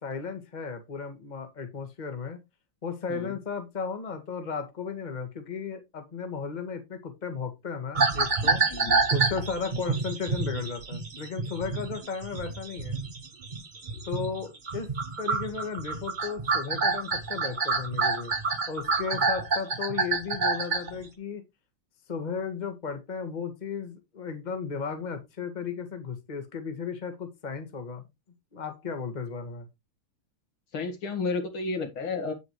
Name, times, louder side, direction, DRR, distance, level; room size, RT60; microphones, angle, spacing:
voice 1, 0.0-2.4 2.8-8.6 9.1-13.0 14.1-14.9 15.2-18.3 18.7-21.4 22.1-28.1 28.5-29.7, left 5 dB, 20° left, 1.7 m, -35 dB
sound 1, 7.9-14.4 14.7-21.0, right 4 dB, 30° right, 1.0 m, -28 dB
voice 2, 8.7-9.0 30.7-32.3, left 4 dB, 75° left, 2.8 m, -32 dB
8.8 x 8.5 x 3.2 m
omnidirectional pair, 2.3 m